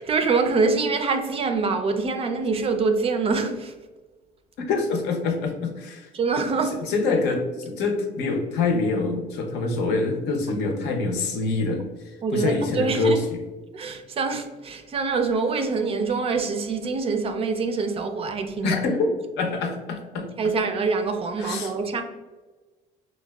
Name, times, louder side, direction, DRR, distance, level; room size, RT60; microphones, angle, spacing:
voice 1, 0.0-3.7 6.1-6.8 12.2-13.2 13.7-18.8 20.4-22.0, right 4 dB, 35° right, 0.4 m, -25 dB
voice 2, 4.6-6.1 6.9-13.4 18.6-20.5 21.4-21.7, left 3 dB, 80° left, 0.6 m, -25 dB
4.0 x 2.1 x 2.2 m
cardioid pair, 110°, 17 cm